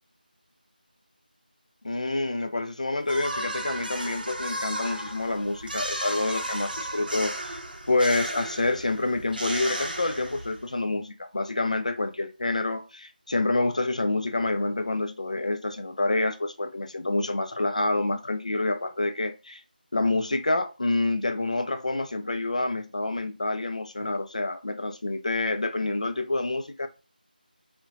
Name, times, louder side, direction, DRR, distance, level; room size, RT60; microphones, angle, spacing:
voice 1, 1.8-19.6 19.9-26.9, left 2 dB, 45° left, 0.3 m, -27 dB
sound 1, 3.1-10.7, right 1 dB, 65° right, 0.6 m, -34 dB
2.7 x 2.1 x 2.3 m
figure-of-eight pair, 165°, 5 cm